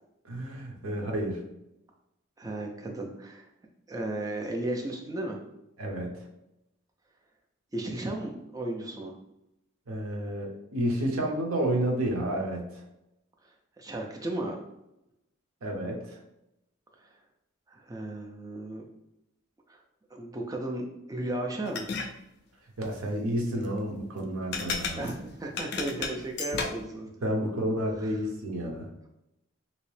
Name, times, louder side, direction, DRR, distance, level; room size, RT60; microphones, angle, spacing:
voice 1, 0.2-1.4 5.8-6.1 9.9-12.8 15.6-16.2 22.8-25.0 27.2-28.9, right 1 dB, 85° right, 1 dB, 0.7 m, -30 dB
voice 2, 2.4-3.5 3.9-5.4 7.7-9.1 13.8-14.6 17.0-17.1 17.7-18.9 19.7-19.8 20.1-21.9 24.9-27.1 28.0-28.2, right 1 dB, 15° right, 0 dB, 0.4 m, -35 dB
sound 1, 21.7-22.1 24.5-26.9, left 4 dB, 50° left, 0.3 m, -33 dB
3.0 x 2.8 x 3.1 m, 0.86 s
head